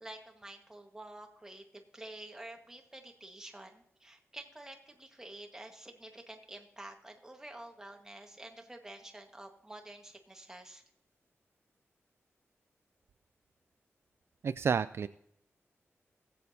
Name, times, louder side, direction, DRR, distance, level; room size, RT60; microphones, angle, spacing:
voice 1, 0.0-10.8, right 1 dB, 10° right, 3 dB, 1.5 m, -49 dB
voice 2, 14.4-15.1, right 6 dB, 60° right, 13 dB, 0.3 m, -30 dB
19.5 x 8.3 x 2.8 m, 0.73 s
wide cardioid pair, 140°, 5 cm